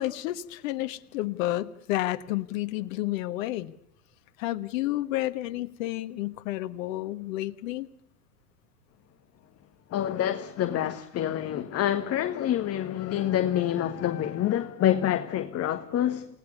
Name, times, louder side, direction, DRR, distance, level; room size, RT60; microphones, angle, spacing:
voice 1, 0.0-3.7 4.4-7.9, left 15 dB, 55° left, 1.5 m, -30 dB
voice 2, 9.9-16.3, left 11 dB, 30° left, 1.6 m, -27 dB
29.0 x 18.0 x 8.2 m
hypercardioid pair, 90°, 48 cm